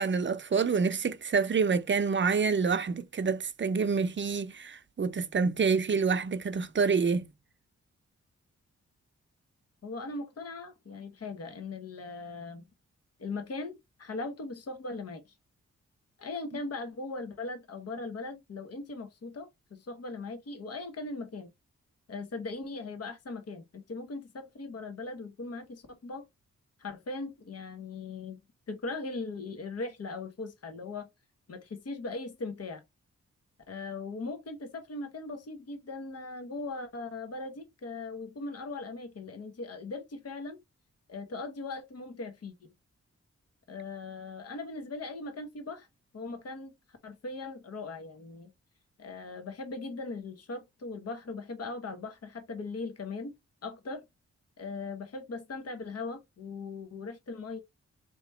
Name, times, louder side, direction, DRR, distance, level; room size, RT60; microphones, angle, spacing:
voice 1, 0.0-7.3, right 5 dB, 40° right, 0.6 m, -27 dB
voice 2, 9.8-12.7 13.2-15.2 16.2-21.5 22.1-26.2 26.8-28.4 28.7-31.1 31.5-32.8 33.7-40.6 41.1-42.7 43.7-45.9 46.1-46.7 47.0-48.5 49.0-53.3 53.6-54.0 54.6-57.6, left 3 dB, 55° left, 1.1 m, -39 dB
3.5 x 3.0 x 4.3 m
cardioid pair, 60°, 29 cm